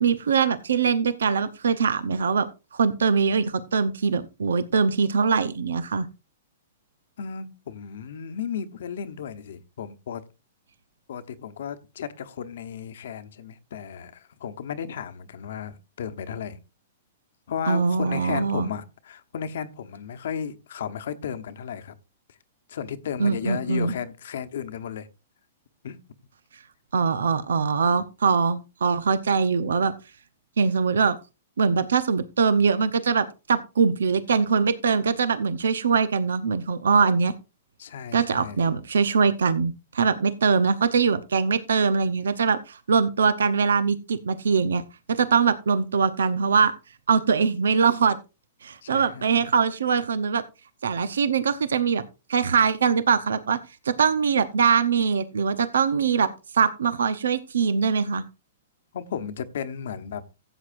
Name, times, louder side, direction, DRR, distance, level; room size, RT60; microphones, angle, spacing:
voice 1, 0.0-2.5 2.7-6.1 17.7-18.7 23.2-23.9 26.9-29.9 30.6-31.1 31.6-37.3 38.1-44.8 45.1-46.7 47.1-48.2 48.6-50.4 50.8-52.0 52.3-53.6 53.8-56.3 56.5-58.2, right 5 dB, 90° right, 0.8 m, -22 dB
voice 2, 7.2-10.2 11.1-16.6 17.5-22.0 22.7-25.1 25.8-26.0 37.8-38.6 48.8-49.3 58.9-60.2, left 8 dB, 75° left, 1.0 m, -34 dB
15.5 x 7.9 x 2.6 m
hypercardioid pair, 140°, 0 cm